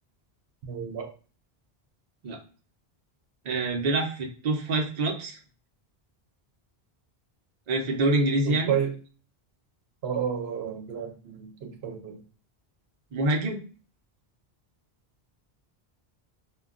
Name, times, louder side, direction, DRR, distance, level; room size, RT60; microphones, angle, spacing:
voice 1, 0.6-1.1 8.5-8.9 10.0-12.2, right 8 dB, 75° right, 3 dB, 0.9 m, -31 dB
voice 2, 3.5-5.4 7.7-8.7 13.1-13.6, right 2 dB, 50° right, 2 dB, 0.6 m, -26 dB
2.2 x 2.2 x 3.6 m, 0.37 s
omnidirectional pair, 1.1 m